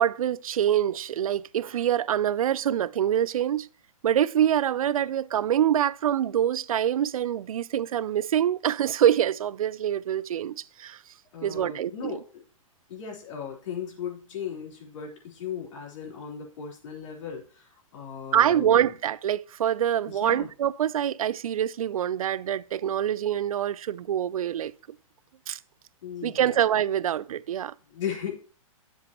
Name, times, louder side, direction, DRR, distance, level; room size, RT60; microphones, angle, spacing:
voice 1, 0.0-3.7 4.0-11.0 11.4-12.2 18.3-24.7 25.5-25.6 26.2-27.7, right 10 dB, 85° right, 0.4 m, -25 dB
voice 2, 11.3-12.3 12.9-18.9 20.1-20.5 26.0-26.6 27.9-28.3, left 7 dB, 60° left, 3.7 m, -37 dB
9.6 x 7.3 x 2.9 m
hypercardioid pair, 135°, 18 cm